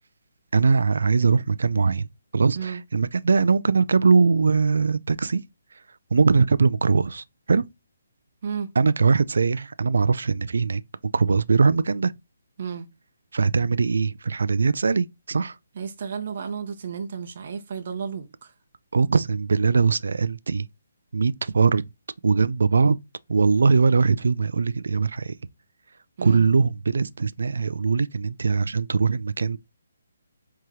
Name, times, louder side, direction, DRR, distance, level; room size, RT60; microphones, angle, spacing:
voice 1, 0.5-2.1 2.3-5.4 5.7-5.8 6.1-7.6 8.8-10.8 11.1-12.1 13.3-15.6 18.9-20.7 21.1-21.9 22.2-23.0 23.3-25.4 26.2-29.6, right 4 dB, 75° right, 0.4 m, -21 dB
voice 2, 12.6-12.9 15.8-18.5 26.2-26.5, right 6 dB, 50° right, 0.8 m, -32 dB
4.8 x 3.5 x 3.1 m
hypercardioid pair, 160°, 0 cm